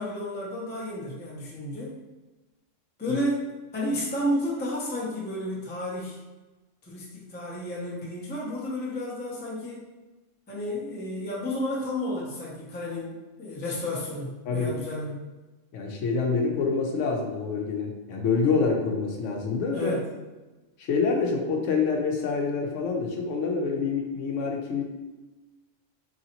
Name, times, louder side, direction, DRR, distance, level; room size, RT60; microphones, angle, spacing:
voice 1, 0.0-2.0 3.0-6.2 6.8-9.8 10.5-15.2 19.7-20.1, left 1 dB, 10° left, -5 dB, 0.5 m, -32 dB
voice 2, 15.7-19.9 20.8-24.8, left 4 dB, 75° left, 1 dB, 1.0 m, -26 dB
3.9 x 3.1 x 2.8 m, 1.1 s
omnidirectional pair, 1.3 m